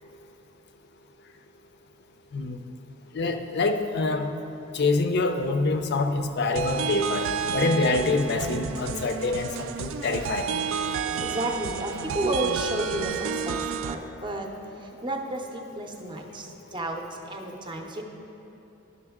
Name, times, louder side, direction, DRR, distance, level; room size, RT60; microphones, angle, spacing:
voice 1, 3.2-4.3 4.8-7.2 7.5-9.5 9.8-10.4, left 3 dB, 55° left, 7 dB, 0.5 m, -25 dB
sound 1, 6.6-13.9, right 6 dB, 75° right, 0.4 m, -30 dB
voice 2, 11.0-18.0, right 1 dB, 25° right, 3 dB, 0.6 m, -32 dB
11.0 x 6.0 x 3.6 m, 3.0 s
head